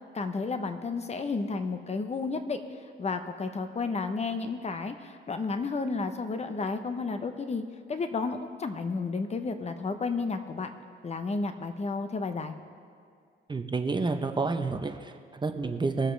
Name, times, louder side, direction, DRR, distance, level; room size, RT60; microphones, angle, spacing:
voice 1, 0.1-2.6 3.0-10.7 11.0-12.5, left 4 dB, 35° left, 8 dB, 0.9 m, -32 dB
voice 2, 13.5-16.1, right 3 dB, 25° right, 6 dB, 0.8 m, -29 dB
22.5 x 7.8 x 3.3 m, 2.2 s
cardioid pair, 90°, 20 cm